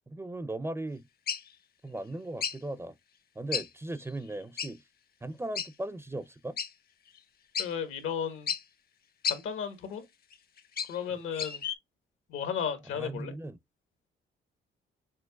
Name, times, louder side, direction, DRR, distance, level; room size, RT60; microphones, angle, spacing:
voice 1, 0.1-1.0 1.8-2.9 3.4-4.8 5.2-6.6 11.3-11.5 12.9-13.6, right 1 dB, 15° right, 0.4 m, -37 dB
sound 1, 1.3-1.5 2.4-2.6 3.5-3.7 4.0-4.1 4.6-4.7 5.6-5.7 6.6-6.7 7.2-7.3 7.5-7.7 8.5-8.6 9.2-9.4 10.3-11.0 11.3-11.8, left 7 dB, 50° left, 0.7 m, -32 dB
voice 2, 7.6-8.5 9.3-10.0 10.9-11.6 12.3-13.3, left 7 dB, 85° left, 1.3 m, -34 dB
6.3 x 2.8 x 2.2 m
cardioid pair, 90°, 20 cm